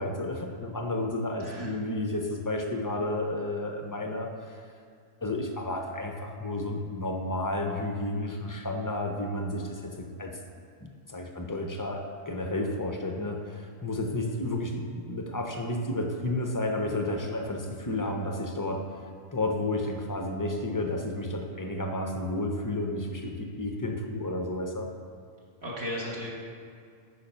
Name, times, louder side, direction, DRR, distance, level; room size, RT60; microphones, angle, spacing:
voice 1, 0.0-4.6 5.2-10.4 10.8-18.9 19.3-24.9, left 1 dB, 30° left, 3 dB, 0.3 m, -32 dB
voice 2, 1.4-1.7 25.6-26.3, left 1 dB, 50° right, -6 dB, 1.8 m, -35 dB
8.9 x 5.0 x 5.4 m, 2.3 s
omnidirectional pair, 1.4 m